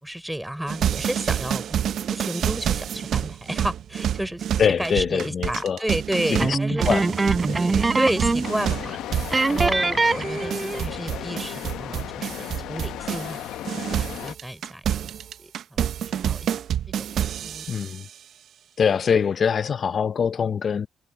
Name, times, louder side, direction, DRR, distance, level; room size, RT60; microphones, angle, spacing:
voice 1, 0.0-1.8 2.0-4.4 4.8-6.9 7.6-13.4 13.8-14.8 15.4-16.5 17.0-17.1 17.4-17.7, right 1 dB, 5° right, 4.2 m, -31 dB
sound 1, 0.7-13.4 13.6-18.0, right 10 dB, 65° right, 0.6 m, -28 dB
voice 2, 4.6-5.9 6.3-7.2 7.5-7.6 17.7-18.1 18.8-20.9, left 7 dB, 50° left, 0.6 m, -24 dB
sound 2, 6.4-8.6 8.8-9.0 9.3-10.9, right 3 dB, 25° right, 0.7 m, -23 dB
sound 3, 8.4-14.4, left 13 dB, 75° left, 0.9 m, -35 dB
supercardioid pair, 70°, 0 cm